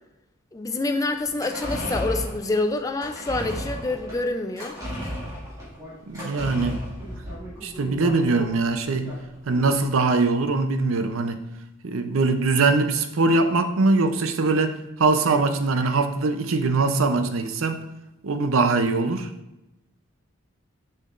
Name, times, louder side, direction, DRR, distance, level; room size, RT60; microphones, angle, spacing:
voice 1, 0.5-4.8, left 2 dB, 15° left, 6 dB, 0.3 m, -27 dB
sound 1, 1.2-9.9 10.2-10.3, equal, 15° right, 2.2 m, -34 dB
voice 2, 6.1-6.8 7.6-9.1 9.5-11.4 11.8-17.8 18.2-19.3, right 3 dB, 75° right, 8 dB, 0.5 m, -22 dB
6.5 x 5.7 x 2.5 m, 0.95 s
head